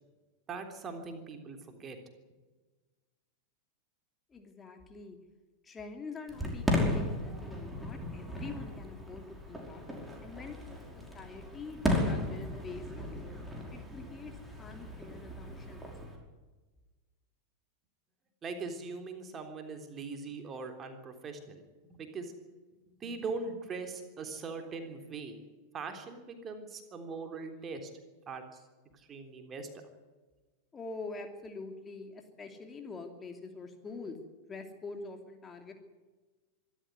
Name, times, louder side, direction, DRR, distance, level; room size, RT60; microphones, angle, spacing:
voice 1, 0.5-2.0 18.4-21.6 21.9-22.3 23.0-25.4 25.7-27.9 28.3-28.4 29.1-29.7, right 4 dB, 25° right, 6 dB, 3.4 m, -41 dB
voice 2, 4.3-5.2 5.6-9.8 10.2-10.6 10.9-13.4 13.7-15.9 30.7-34.2 34.5-35.7, left 3 dB, 20° left, 5 dB, 2.8 m, -45 dB
Fireworks, 6.3-16.2, left 1 dB, 5° right, 5.3 m, -35 dB
25.0 x 13.0 x 9.5 m, 1.3 s
figure-of-eight pair, 90°, 0 cm